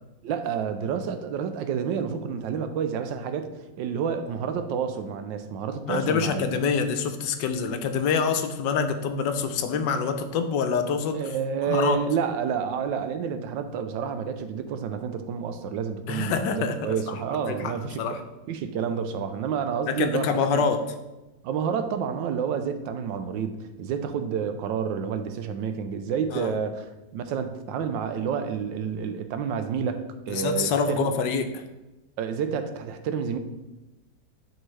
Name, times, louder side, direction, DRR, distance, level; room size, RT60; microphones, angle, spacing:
voice 1, 0.2-6.6 11.1-18.0 18.5-20.6 21.4-31.1 32.2-33.4, right 7 dB, 85° right, 9 dB, 1.3 m, -29 dB
voice 2, 5.9-11.2 11.7-12.0 16.1-17.2 17.4-18.2 19.9-20.8 26.3-26.5 30.3-31.6, left 5 dB, 75° left, 8 dB, 1.2 m, -26 dB
10.5 x 3.6 x 3.2 m, 1.0 s
omnidirectional pair, 2.0 m